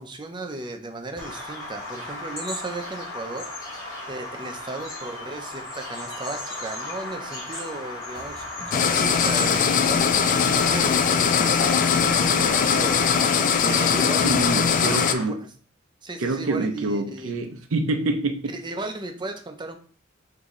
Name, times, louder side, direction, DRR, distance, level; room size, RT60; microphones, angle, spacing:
voice 1, 0.0-3.5 4.1-13.1 13.6-15.5 16.0-17.3 18.5-19.8, right 2 dB, 25° right, 0.6 m, -35 dB
Bird vocalization bird call bird song, 1.2-15.2, left 2 dB, 20° left, 2.2 m, -35 dB
sound 1, 8.1-14.8, equal, 60° left, 1.7 m, -45 dB
sound 2, 8.7-15.1, left 7 dB, 40° left, 0.3 m, -21 dB
voice 2, 14.2-15.4 16.2-18.5, right 2 dB, 85° right, 0.6 m, -26 dB
6.1 x 2.7 x 3.1 m
head